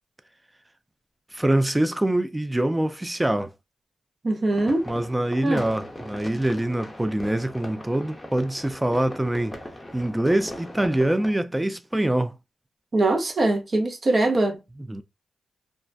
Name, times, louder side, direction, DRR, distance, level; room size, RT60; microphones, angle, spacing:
voice 1, 1.3-3.5 4.9-9.6 9.9-12.3 14.9-15.0, right 1 dB, 15° right, 0.4 m, -24 dB
voice 2, 4.2-4.9 5.4-5.6 12.9-14.6, right 2 dB, 45° right, 0.7 m, -22 dB
sound 1, 4.5-11.4, left 1 dB, 15° left, 0.7 m, -39 dB
2.3 x 2.1 x 2.5 m
supercardioid pair, 50°, 0 cm